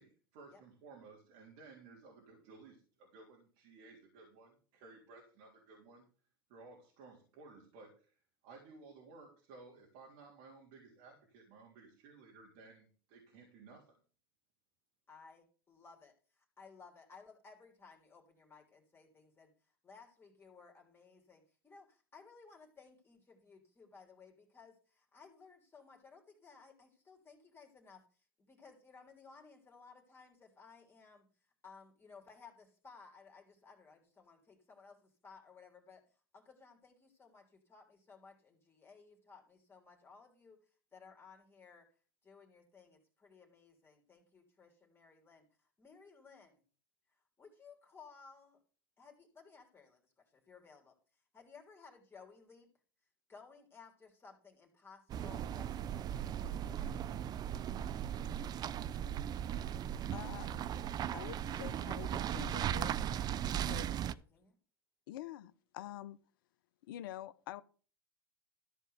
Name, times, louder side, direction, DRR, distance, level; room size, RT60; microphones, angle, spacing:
voice 1, 0.0-6.0 6.5-8.1 8.4-14.0, right 3 dB, 65° right, 3.5 m, -57 dB
voice 2, 15.1-19.5 19.8-28.0 28.4-31.3 31.6-36.0 36.3-40.6 40.9-41.9 42.2-46.6 47.4-48.6 49.0-51.0 51.3-52.7 53.3-56.9 63.8-64.6, left 5 dB, 20° left, 3.3 m, -59 dB
sound 1, 55.1-64.1, right 10 dB, 35° right, 0.6 m, -37 dB
voice 3, 60.1-60.5 61.1-62.9 63.6-64.1 65.1-66.2 66.8-67.6, left 14 dB, 70° left, 0.8 m, -46 dB
14.0 x 4.6 x 8.0 m
hypercardioid pair, 95°, 12 cm